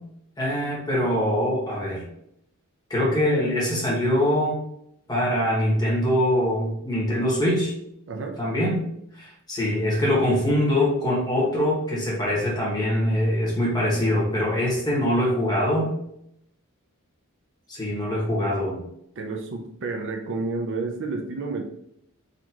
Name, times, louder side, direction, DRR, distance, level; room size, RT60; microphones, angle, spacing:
voice 1, 0.4-2.0 2.9-4.6 5.1-7.7 8.4-8.8 9.1-15.9 17.7-18.8, left 1 dB, 20° left, -5 dB, 1.5 m, -23 dB
voice 2, 8.1-8.4 19.2-21.7, right 3 dB, 60° right, 2 dB, 0.5 m, -30 dB
4.2 x 2.9 x 2.9 m, 0.75 s
head